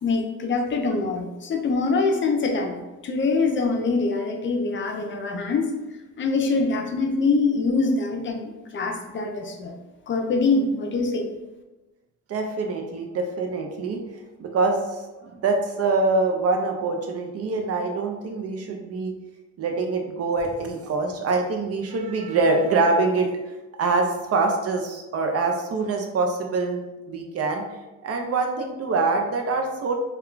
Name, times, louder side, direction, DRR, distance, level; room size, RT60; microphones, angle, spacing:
voice 1, 0.0-5.6 6.2-9.8 10.1-11.3, left 3 dB, 40° left, 4 dB, 0.5 m, -24 dB
voice 2, 12.3-14.0 14.4-19.1 19.6-23.3 23.8-26.8 27.1-27.6 28.0-29.9, right 3 dB, 50° right, 3 dB, 0.6 m, -24 dB
2.3 x 2.1 x 3.7 m, 1.1 s
cardioid pair, 90°, 30 cm